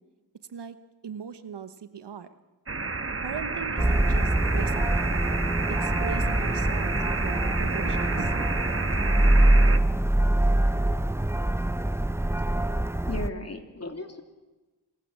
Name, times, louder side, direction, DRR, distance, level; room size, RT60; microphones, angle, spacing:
voice 1, 1.0-2.3 3.2-5.2 5.7-8.3, right 7 dB, 75° right, 12 dB, 1.2 m, -40 dB
sound 1, 2.7-9.8, right 4 dB, 35° right, 1.3 m, -30 dB
distant churchbells, 3.8-13.3, right 1 dB, 5° right, 0.7 m, -24 dB
voice 2, 13.1-14.2, left 2 dB, 35° left, 5 dB, 3.1 m, -35 dB
26.5 x 16.0 x 7.4 m, 1.2 s
cardioid pair, 45°, 42 cm